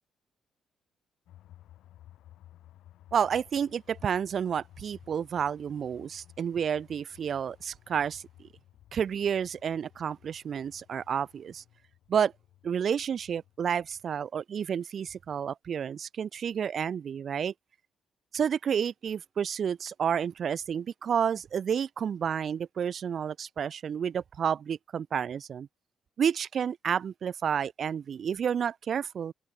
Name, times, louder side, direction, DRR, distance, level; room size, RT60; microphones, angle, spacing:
sound 1, 1.3-14.2, left 13 dB, 80° left, 7.0 m, -57 dB
voice 1, 3.1-8.5 8.9-11.6 12.1-12.3 12.6-17.5 18.3-25.7 26.2-29.3, right 8 dB, 55° right, 0.5 m, -30 dB
open air
cardioid pair, 90°, 0 cm